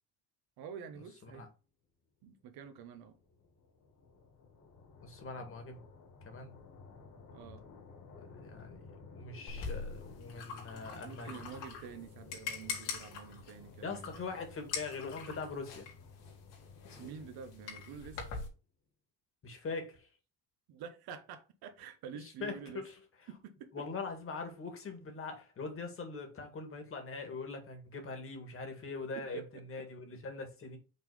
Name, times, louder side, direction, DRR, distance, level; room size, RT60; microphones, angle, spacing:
voice 1, 0.6-1.4 2.2-3.2 7.3-7.6 11.0-14.3 17.0-18.2 20.7-22.8 23.3-23.8 29.2-29.6, right 7 dB, 65° right, 1.1 m, -48 dB
sound 1, 2.3-18.6, left 4 dB, 50° left, 2.3 m, -56 dB
voice 2, 5.0-5.8 6.2-6.6 8.3-11.5 13.8-15.9 19.4-20.1 22.1-22.9 23.7-30.8, left 4 dB, 30° left, 1.9 m, -42 dB
sound 2, 9.5-18.5, left 5 dB, 75° left, 2.5 m, -44 dB
5.7 x 3.6 x 4.9 m
cardioid pair, 125°, 41 cm